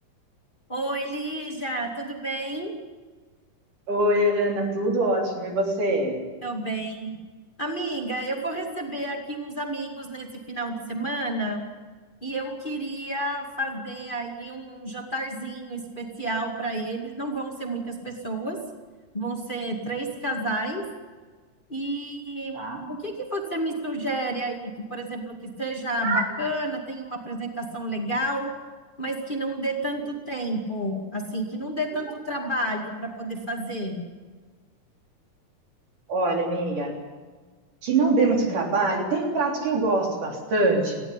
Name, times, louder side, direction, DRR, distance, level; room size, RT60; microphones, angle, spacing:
voice 1, 0.7-2.7 6.4-7.2 7.6-11.6 12.2-18.6 19.1-20.8 21.7-28.5 29.0-34.1, right 1 dB, 15° left, 1 dB, 2.1 m, -30 dB
voice 2, 3.9-6.1 22.5-22.9 26.0-26.3 36.1-36.9 37.8-41.0, right 2 dB, 90° right, 1 dB, 5.1 m, -23 dB
18.5 x 16.0 x 10.0 m, 1.4 s
omnidirectional pair, 3.6 m